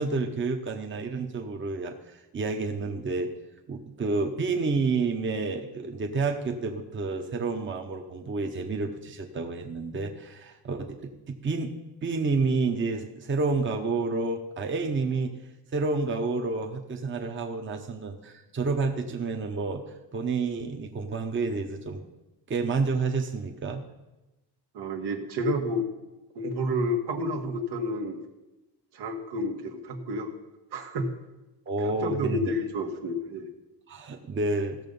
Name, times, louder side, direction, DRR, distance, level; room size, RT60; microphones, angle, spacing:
voice 1, 0.0-3.3 3.7-11.7 12.0-15.3 15.7-22.0 22.5-23.8 31.7-32.5 33.9-34.8, right 3 dB, 30° right, 3 dB, 0.9 m, -29 dB
voice 2, 24.7-25.9 26.4-28.2 28.9-30.3 30.7-31.1 32.0-33.5, equal, 75° right, 4 dB, 1.7 m, -30 dB
15.5 x 6.7 x 5.4 m, 1.0 s
cardioid pair, 135°, 41 cm